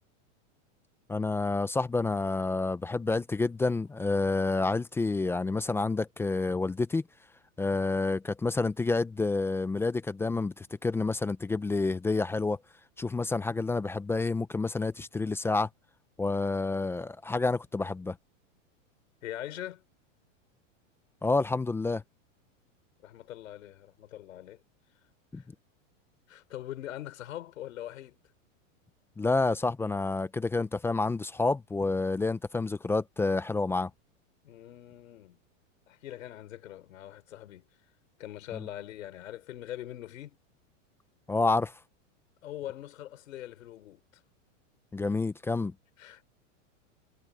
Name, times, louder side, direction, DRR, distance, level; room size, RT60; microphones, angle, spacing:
voice 1, 1.1-7.0 7.6-12.6 13.0-15.7 16.2-18.2 21.2-22.0 25.3-25.4 29.2-33.9 38.5-38.6 41.3-41.7 44.9-45.7, left 3 dB, 5° left, 0.5 m, -29 dB
voice 2, 19.2-19.8 23.0-24.6 25.3-25.5 26.3-28.2 34.4-35.4 35.9-37.7 38.2-40.4 42.4-44.2 46.0-46.2, left 13 dB, 85° left, 3.9 m, -42 dB
supercardioid pair, 140°, 38 cm